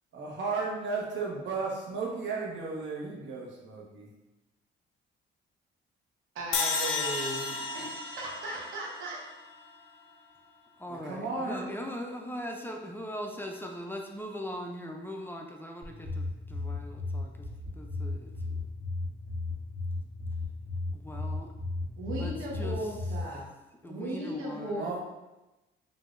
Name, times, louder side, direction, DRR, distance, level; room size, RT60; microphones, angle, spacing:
voice 1, 0.1-4.1 10.9-11.6 24.8-25.0, right 4 dB, 70° right, -3 dB, 1.2 m, -34 dB
voice 2, 6.3-9.2 22.0-23.5 23.8-25.0, right 1 dB, 90° right, -3 dB, 1.1 m, -37 dB
sound 1, 6.5-9.7, left 4 dB, 75° left, 0.6 m, -33 dB
voice 3, 10.8-17.5 17.7-18.6 20.9-21.5 22.1-23.0 23.8-24.9, equal, 10° left, 1 dB, 0.4 m, -40 dB
sound 2, 15.8-23.2, left 3 dB, 45° right, 1.4 m, -35 dB
5.3 x 2.7 x 2.5 m, 1.0 s
cardioid pair, 90°, 20 cm